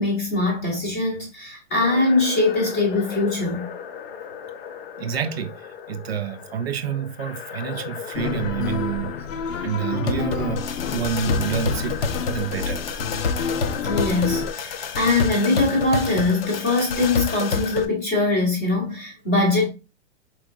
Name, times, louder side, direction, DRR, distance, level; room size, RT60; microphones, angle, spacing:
voice 1, 0.0-3.7 13.9-19.7, left 2 dB, 10° left, 0.6 m, -22 dB
sound 1, 1.8-17.8, left 5 dB, 50° left, 0.6 m, -30 dB
voice 2, 5.0-9.1 9.6-12.0 12.3-13.0, right 8 dB, 55° right, 0.4 m, -28 dB
sound 2, 8.1-14.5, left 6 dB, 90° left, 0.6 m, -29 dB
4.6 x 3.5 x 2.4 m
hypercardioid pair, 175°, 38 cm